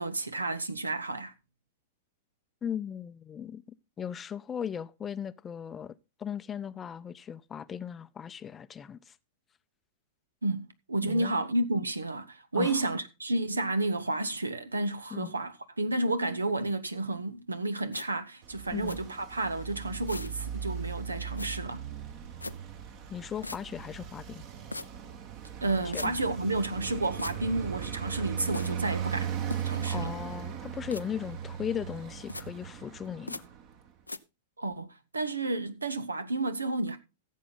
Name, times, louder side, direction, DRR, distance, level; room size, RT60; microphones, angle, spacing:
voice 1, 0.0-1.3 10.4-21.8 25.6-29.3 29.6-30.1 34.6-37.0, right 2 dB, 80° right, 1.0 m, -31 dB
voice 2, 2.6-3.6 4.0-9.1 11.1-11.3 12.5-12.9 15.1-15.3 18.7-19.0 23.1-24.4 25.9-26.1 29.9-33.4, left 8 dB, 20° left, 0.6 m, -37 dB
footsteps-rubbing-scratching, 17.9-18.1 18.9-19.0 20.1-20.4 21.4-21.5 22.4-22.5 23.4-23.6 24.7-24.9 25.9-26.1 27.2-27.4 28.5-28.7 29.5-29.8 30.9-31.0 32.3-32.4 33.3-33.4 34.1-34.2, left 2 dB, 90° left, 0.5 m, -38 dB
Traffic noise roadway noise, 18.4-33.9, right 8 dB, 45° right, 1.7 m, -38 dB
15.5 x 7.4 x 3.9 m
figure-of-eight pair, 95°, 0 cm